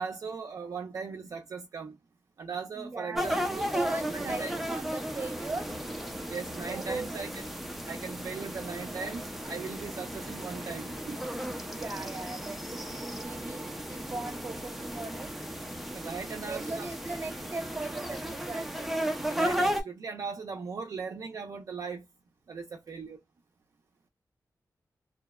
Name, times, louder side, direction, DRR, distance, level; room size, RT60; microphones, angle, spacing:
voice 1, 0.0-2.0 2.4-3.7 4.1-4.6 6.3-7.3 7.9-11.2 15.9-16.9 19.3-22.0 22.5-23.2, right 5 dB, 60° right, 0.4 m, -38 dB
voice 2, 2.7-5.7 6.6-7.2 11.6-15.3 16.4-19.0, right 3 dB, 30° right, 0.8 m, -39 dB
sound 1, 3.1-19.8, equal, 5° right, 0.5 m, -35 dB
2.7 x 2.0 x 2.2 m
wide cardioid pair, 140°, 7 cm